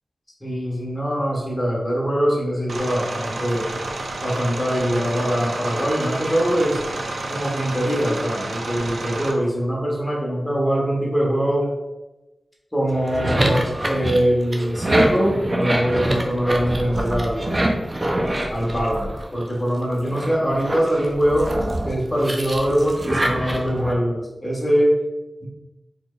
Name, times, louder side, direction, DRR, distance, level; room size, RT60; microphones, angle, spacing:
voice 1, 0.4-3.7 4.2-6.8 7.3-11.7 12.7-17.6 18.5-21.5 21.8-24.9 25.4-25.5, equal, 20° left, -4 dB, 1.1 m, -22 dB
sound 1, 2.7-9.3, right 2 dB, 90° right, 0.4 m, -30 dB
sound 2, 12.9-19.6 20.0-23.9, right 1 dB, 30° right, 0.4 m, -25 dB
4.3 x 3.1 x 2.3 m, 1.0 s
wide cardioid pair, 110°, 0 cm